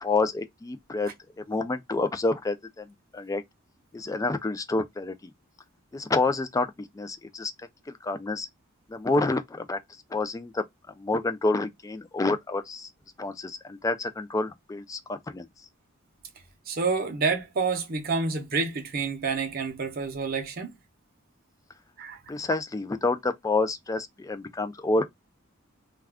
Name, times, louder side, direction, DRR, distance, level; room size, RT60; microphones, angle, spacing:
voice 1, 0.0-1.1 1.4-2.9 3.1-3.4 3.9-5.3 5.9-7.5 7.9-8.5 8.9-9.8 10.1-10.6 11.0-12.9 13.2-15.5 22.3-25.0, left 3 dB, 15° left, 0.3 m, -28 dB
voice 2, 16.7-20.7 22.0-22.3, right 4 dB, 45° right, 0.7 m, -28 dB
2.3 x 2.3 x 3.4 m
head